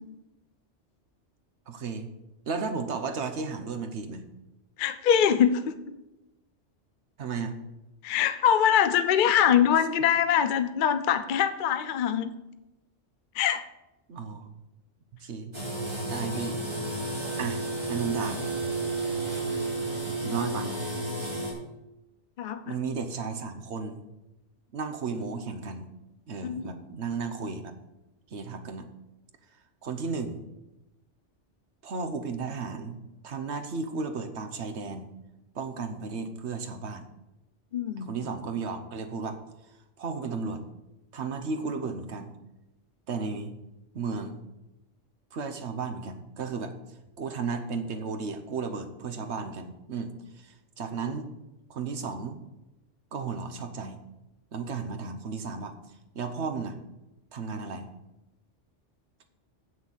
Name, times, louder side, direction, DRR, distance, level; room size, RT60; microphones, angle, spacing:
voice 1, 1.7-2.1 2.4-4.2 7.2-7.6 14.1-14.5 15.2-15.5 16.0-16.6 17.4-17.6 17.9-18.4 20.2-20.8 22.6-24.0 24.7-25.9 26.3-27.7 28.3-28.9 29.8-30.4 31.8-33.0 33.2-35.1 35.5-37.0 38.0-39.4 40.0-40.6 41.1-42.3 43.1-43.5 43.9-44.4 45.3-46.7 47.2-50.1 50.4-51.3 51.7-52.4 53.1-54.0 54.5-55.8 56.1-56.8 57.3-57.9, right 4 dB, 70° right, 7 dB, 1.2 m, -34 dB
voice 2, 4.8-5.7 8.0-12.4 13.3-13.6 22.4-22.7 26.4-26.7 37.7-38.1, left 9 dB, 55° left, 10 dB, 0.7 m, -23 dB
sound 1, 15.5-21.5, right 2 dB, 25° right, 3.1 m, -32 dB
7.9 x 6.3 x 7.3 m, 0.97 s
omnidirectional pair, 1.2 m